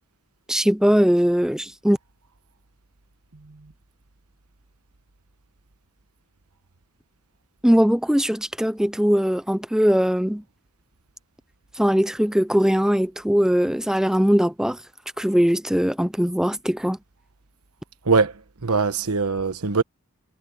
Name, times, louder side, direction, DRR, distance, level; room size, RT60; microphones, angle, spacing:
voice 1, 0.5-2.0 7.6-10.4 11.8-14.8 15.2-17.0, equal, 5° right, 0.6 m, -20 dB
voice 2, 18.6-19.8, right 4 dB, 85° right, 1.2 m, -21 dB
head